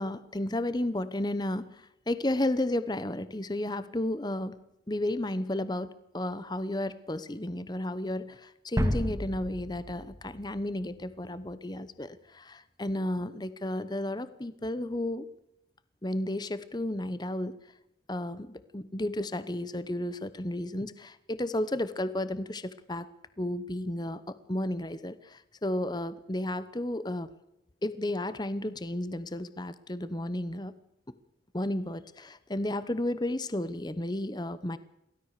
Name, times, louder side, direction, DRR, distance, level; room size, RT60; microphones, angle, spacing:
voice 1, 0.0-5.9 6.1-15.3 16.0-17.6 18.1-23.1 23.4-27.3 27.8-30.7 31.5-34.8, left 1 dB, 20° left, 14 dB, 0.9 m, -33 dB
sound 1, 8.8-11.3, equal, 15° right, 2.2 m, -32 dB
23.0 x 16.5 x 6.7 m, 0.85 s
head